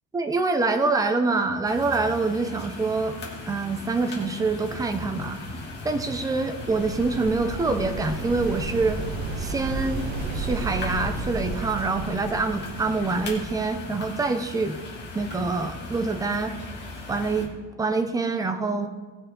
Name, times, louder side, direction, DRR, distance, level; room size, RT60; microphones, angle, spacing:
voice 1, 0.1-3.2 3.5-5.4 5.8-9.0 9.4-10.0 10.3-14.8 15.1-16.5 17.1-17.5 17.8-18.9, right 3 dB, 10° right, 6 dB, 0.6 m, -25 dB
sound 1, 1.6-17.5, left 2 dB, 30° left, 2.3 m, -38 dB
sound 2, 6.6-13.4, right 3 dB, 85° right, 1.5 m, -33 dB
18.5 x 6.6 x 3.9 m, 1.4 s
cardioid pair, 175°, 35 cm